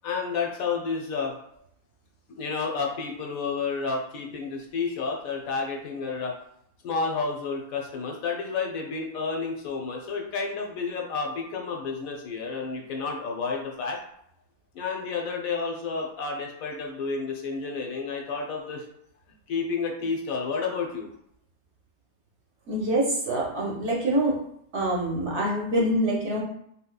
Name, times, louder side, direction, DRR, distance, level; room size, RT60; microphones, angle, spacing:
voice 1, 0.0-1.3 2.3-6.3 6.8-14.0 14.7-18.9 19.5-21.1, left 4 dB, 75° left, 0 dB, 1.1 m, -30 dB
voice 2, 22.7-24.4 24.7-26.4, right 1 dB, 55° right, -3 dB, 0.9 m, -25 dB
3.7 x 2.8 x 2.2 m, 0.72 s
omnidirectional pair, 1.5 m